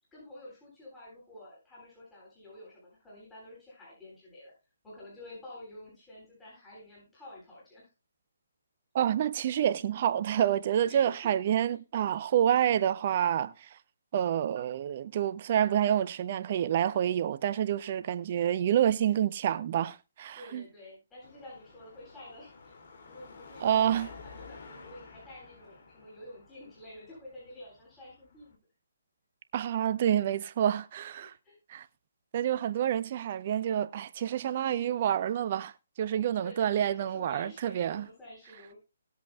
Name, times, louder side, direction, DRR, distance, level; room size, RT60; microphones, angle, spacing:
voice 1, 0.1-4.5 4.8-7.9 10.8-11.3 11.7-11.8 20.3-28.6 31.2-31.6 36.4-38.8, left 1 dB, 10° left, 8.0 m, -49 dB
voice 2, 8.9-13.7 14.1-20.6 23.6-24.1 29.5-31.3 31.7-31.9 32.3-38.1, right 10 dB, 40° right, 0.8 m, -28 dB
Car passing by / Traffic noise roadway noise / Engine, 21.2-28.6, left 4 dB, 50° left, 2.6 m, -52 dB
19.5 x 8.1 x 2.3 m
figure-of-eight pair, 145°, 0 cm